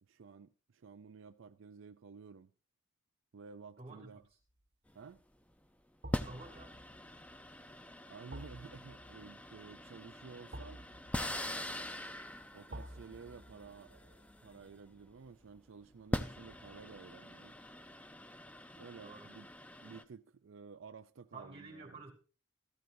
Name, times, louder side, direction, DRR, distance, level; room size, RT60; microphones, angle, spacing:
voice 1, 0.0-2.5 3.3-4.2 4.9-5.2 8.1-10.8 12.5-17.6 18.8-19.5 19.8-22.0, right 5 dB, 80° right, 0.5 m, -53 dB
voice 2, 3.8-4.1 6.2-6.7 19.0-19.3 21.3-22.1, right 3 dB, 30° right, 3.0 m, -50 dB
sound 1, 4.2-4.6 6.0-17.0 17.4-17.5, right 1 dB, 55° right, 1.6 m, -54 dB
sound 2, 4.9-5.2 6.1-15.1 15.9-20.0, left 1 dB, 5° left, 0.6 m, -43 dB
15.0 x 13.5 x 2.7 m
head